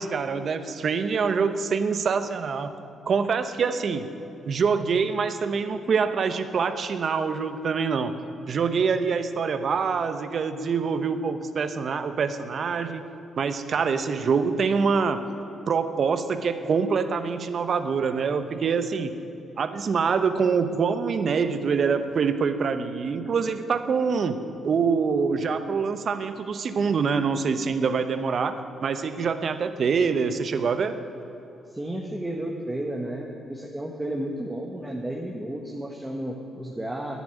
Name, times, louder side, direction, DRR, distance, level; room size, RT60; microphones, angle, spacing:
voice 1, 0.0-2.8 3.1-4.1 4.5-8.1 8.5-13.0 13.4-15.2 15.7-19.1 19.6-24.4 24.6-28.5 28.8-31.0, right 5 dB, 60° right, 10 dB, 0.9 m, -25 dB
voice 2, 31.7-37.2, right 1 dB, 15° right, -1 dB, 1.5 m, -32 dB
10.5 x 10.0 x 9.1 m, 2.8 s
cardioid pair, 80°, 0 cm